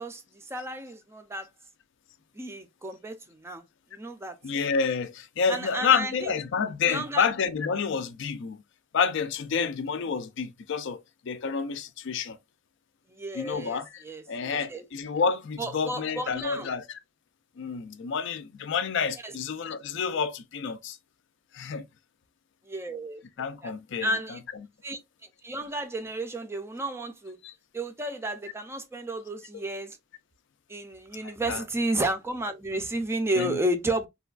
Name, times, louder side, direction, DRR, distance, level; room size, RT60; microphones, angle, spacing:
voice 1, 0.0-1.5 2.3-3.6 3.9-4.4 5.5-6.3 6.9-7.3 13.2-14.9 15.6-16.7 19.1-19.4 22.7-23.2 23.6-23.7 24.0-24.4 24.8-25.0 25.4-27.4 27.7-30.0 30.7-34.1, right 1 dB, 15° right, 0.4 m, -32 dB
voice 2, 4.4-8.6 8.9-12.4 13.3-17.0 17.6-21.0 21.5-21.9 23.4-24.4 27.4-27.5 31.2-31.6 33.3-33.6, left 6 dB, 65° left, 0.4 m, -29 dB
3.3 x 2.2 x 2.3 m
head